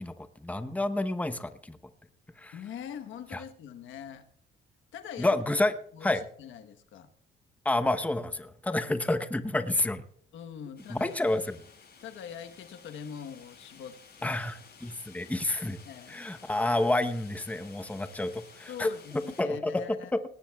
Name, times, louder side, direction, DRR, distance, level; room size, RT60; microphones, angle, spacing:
voice 1, 0.0-1.8 2.4-2.5 3.3-3.4 5.2-5.7 6.0-6.2 7.6-10.0 10.9-11.6 14.2-15.8 16.1-18.9 19.4-19.8, left 2 dB, 5° left, 10 dB, 0.9 m, -29 dB
voice 2, 2.5-4.2 4.9-5.4 5.9-7.1 10.3-11.4 12.0-14.4 15.8-16.2 18.7-20.1, left 8 dB, 80° left, 8 dB, 1.2 m, -43 dB
sound 1, 10.8-19.4, left 5 dB, 60° left, 6.8 m, -54 dB
19.0 x 18.0 x 2.3 m, 0.62 s
cardioid pair, 90°, 20 cm